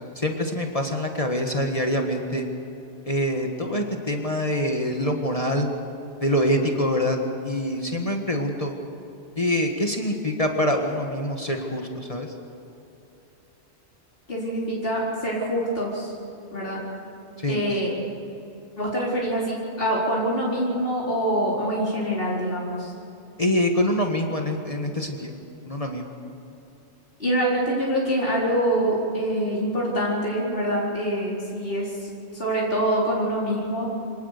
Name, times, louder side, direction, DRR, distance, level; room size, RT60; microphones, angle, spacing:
voice 1, 0.2-2.5 3.0-5.7 6.2-7.2 7.4-8.8 9.4-12.3 17.4-17.6 23.4-25.3 25.7-26.1, left 1 dB, 30° left, 2 dB, 1.8 m, -25 dB
voice 2, 14.3-16.1 16.5-16.8 17.5-17.9 18.8-22.9 27.2-33.9, right 1 dB, 50° left, -5 dB, 4.5 m, -25 dB
26.0 x 18.5 x 6.7 m, 3.0 s
omnidirectional pair, 1.2 m